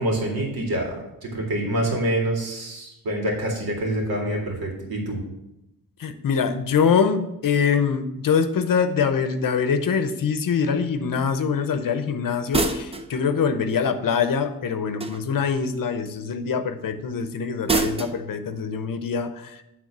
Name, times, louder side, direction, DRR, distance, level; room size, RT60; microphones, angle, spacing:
voice 1, 0.0-5.2, right 1 dB, 85° right, -1 dB, 2.4 m, -26 dB
voice 2, 6.0-19.6, left 6 dB, 65° left, 10 dB, 0.7 m, -24 dB
sound 1, 12.5-13.1 15.0-15.5 17.7-18.2, right 2 dB, 15° right, 0.5 m, -24 dB
9.1 x 3.7 x 6.0 m, 0.88 s
wide cardioid pair, 140°, 36 cm